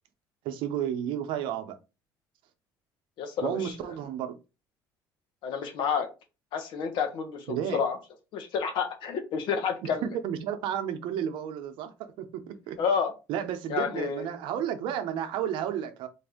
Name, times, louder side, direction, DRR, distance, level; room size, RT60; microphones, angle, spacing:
voice 1, 0.4-1.8 3.4-4.3 7.5-7.8 9.8-9.9 10.2-11.9 12.2-12.8 13.3-16.1, right 9 dB, 75° right, 0.7 m, -32 dB
voice 2, 3.2-3.8 5.4-6.1 6.5-8.0 8.3-10.2 12.8-13.1 13.7-14.3, left 6 dB, 65° left, 1.1 m, -29 dB
4.0 x 2.6 x 3.5 m
cardioid pair, 110°, 9 cm